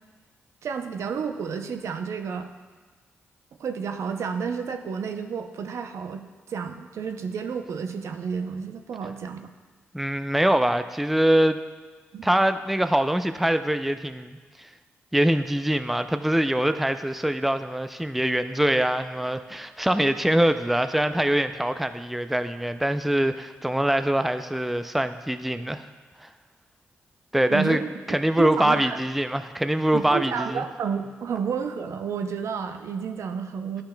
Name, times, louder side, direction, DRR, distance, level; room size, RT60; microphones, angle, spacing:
voice 1, 0.6-2.5 3.6-6.2 6.5-9.5 12.1-12.3 27.5-27.9 28.4-29.0 29.9-33.8, right 6 dB, 70° right, 6 dB, 0.5 m, -31 dB
voice 2, 9.9-11.6 12.2-14.7 15.1-25.9 26.2-26.3 27.3-27.8 28.1-30.6, right 1 dB, 5° right, 10 dB, 0.4 m, -23 dB
11.0 x 5.7 x 2.2 m, 1.4 s
supercardioid pair, 45°, 5 cm